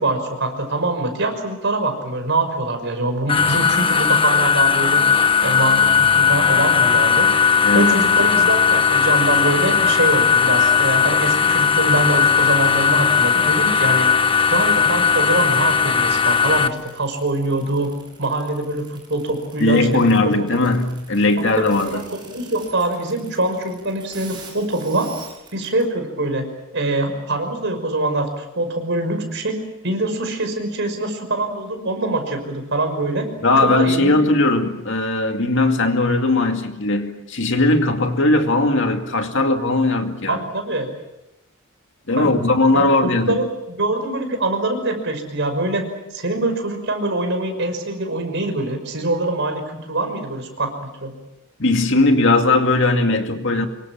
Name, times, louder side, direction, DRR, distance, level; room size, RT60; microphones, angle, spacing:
voice 1, 0.0-5.0 5.4-7.3 7.7-14.1 14.5-17.9 18.2-20.3 20.6-20.7 21.4-21.6 21.9-25.1 25.5-26.4 26.7-29.6 29.8-33.3 33.6-34.3 40.3-40.9 42.1-42.4 42.7-45.8 46.1-50.7 51.0-51.1, right 2 dB, 55° right, 6 dB, 5.9 m, -24 dB
sound 1, 3.3-16.7, left 6 dB, 25° left, 1.0 m, -17 dB
voice 2, 7.6-8.0 19.6-22.0 33.4-40.4 42.1-43.4 51.6-53.7, left 2 dB, 60° left, 5 dB, 2.3 m, -18 dB
sound 2, 7.7-25.8, right 5 dB, 20° right, 7.0 m, -45 dB
26.5 x 23.5 x 7.5 m, 0.93 s
head